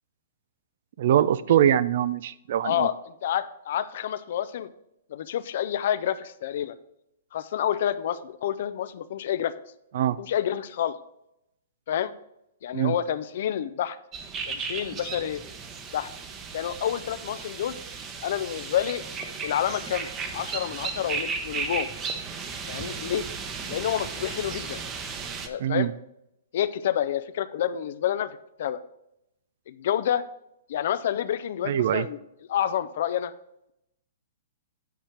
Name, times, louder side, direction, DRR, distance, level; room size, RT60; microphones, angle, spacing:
voice 1, 1.0-2.9 9.9-10.2 12.7-13.0 25.6-25.9 31.6-32.1, right 11 dB, 60° right, 17 dB, 0.4 m, -23 dB
voice 2, 2.6-4.7 5.1-6.8 7.3-9.5 10.2-10.9 11.9-12.1 12.6-14.0 14.5-15.4 15.9-16.1 16.5-17.8 18.2-19.0 19.4-21.9 22.7-23.2 23.7-24.8 25.4-25.9 26.5-28.3 28.6-28.8 29.7-30.2 30.7-32.2 32.5-33.3, left 10 dB, 60° left, 13 dB, 0.5 m, -28 dB
sound 1, 14.1-25.5, right 5 dB, 25° right, 0.9 m, -35 dB
9.2 x 4.4 x 4.8 m, 0.82 s
hypercardioid pair, 125°, 0 cm